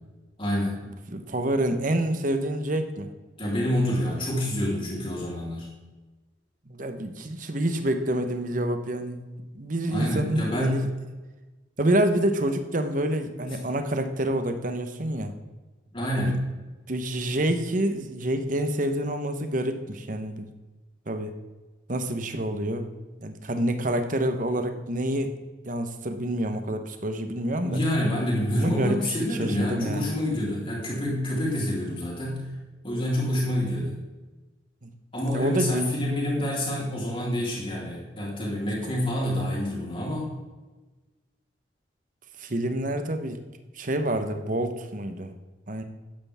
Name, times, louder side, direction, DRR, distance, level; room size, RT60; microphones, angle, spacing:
voice 1, 0.4-0.8 3.4-5.7 9.9-10.9 15.9-16.4 27.6-32.5 32.8-33.9 35.1-40.3, left 1 dB, 25° left, -4 dB, 3.8 m, -27 dB
voice 2, 1.1-3.1 6.7-9.2 9.5-10.9 11.8-15.3 16.2-16.4 16.9-20.5 21.1-21.3 21.9-22.9 23.2-25.3 25.6-27.8 28.6-30.1 34.8-34.9 35.3-35.9 38.9-39.0 42.4-43.4 43.7-45.3 45.7-45.8, right 1 dB, 45° right, 7 dB, 1.1 m, -27 dB
13.0 x 10.0 x 3.6 m, 1.2 s
head